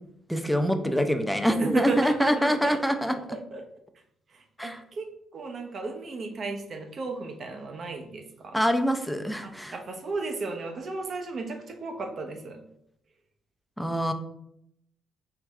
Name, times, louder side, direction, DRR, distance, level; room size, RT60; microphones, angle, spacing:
voice 1, 0.3-3.1 4.6-4.8 8.5-9.8 13.8-14.1, equal, ahead, 6 dB, 0.5 m, -25 dB
voice 2, 1.6-3.6 4.3-8.6 9.4-12.6, right 3 dB, 50° right, 5 dB, 0.8 m, -34 dB
4.7 x 3.2 x 3.6 m, 0.75 s
cardioid pair, 90°, 0 cm